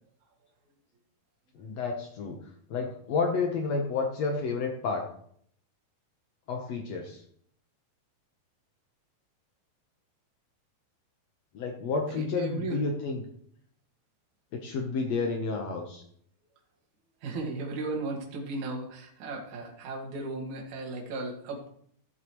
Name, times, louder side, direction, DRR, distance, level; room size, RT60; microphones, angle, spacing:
voice 1, 1.5-2.4 2.7-5.0 6.5-7.2 11.5-13.2 14.5-16.0, left 4 dB, 85° left, 2 dB, 1.4 m, -30 dB
voice 2, 12.1-12.8 17.2-21.7, right 2 dB, 50° right, -1 dB, 3.1 m, -36 dB
16.0 x 7.9 x 3.1 m, 0.64 s
omnidirectional pair, 4.8 m